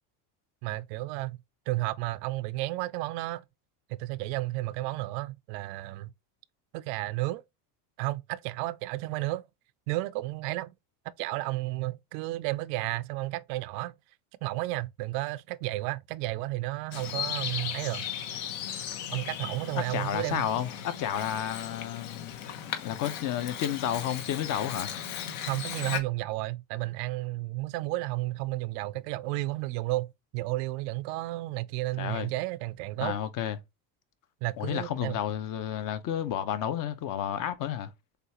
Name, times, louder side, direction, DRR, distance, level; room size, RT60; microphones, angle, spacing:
voice 1, 0.6-1.4 1.7-3.4 4.0-6.1 6.7-7.4 8.0-9.4 9.9-10.7 11.2-13.9 14.4-18.1 19.1-20.4 25.5-30.1 30.3-33.2 34.4-35.2, right 18 dB, 75° right, 0.5 m, -32 dB
Bird vocalization bird call bird song, 16.9-26.0, left 9 dB, 70° left, 1.2 m, -37 dB
voice 2, 19.9-22.3 22.8-25.0 32.0-32.3 33.0-33.6 34.6-37.9, left 10 dB, 45° left, 0.7 m, -31 dB
6.6 x 2.4 x 2.8 m
supercardioid pair, 125°, 47 cm